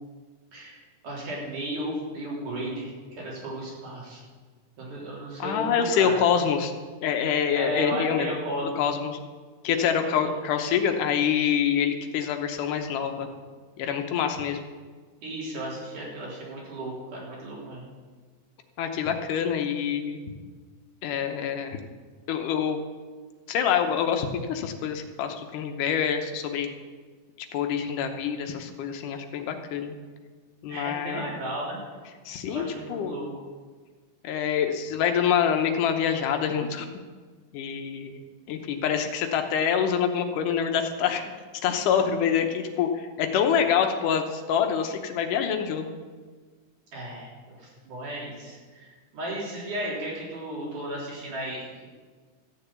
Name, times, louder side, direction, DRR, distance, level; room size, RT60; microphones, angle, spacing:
voice 1, 1.0-4.2 4.8-6.2 7.5-8.9 10.0-10.1 13.2-13.3 15.2-17.8 30.7-31.8 32.4-33.3 46.9-51.9, equal, 75° right, -5 dB, 5.3 m, -34 dB
voice 2, 5.4-6.7 7.0-8.4 8.7-9.2 9.6-13.3 13.8-14.6 18.8-20.2 21.0-21.8 22.3-22.8 23.5-26.7 27.5-30.0 30.6-31.3 32.3-33.2 34.2-36.9 37.5-38.2 38.5-41.2 41.6-45.9, left 8 dB, 90° left, 5 dB, 2.5 m, -26 dB
14.0 x 6.8 x 8.6 m, 1.5 s
omnidirectional pair, 3.6 m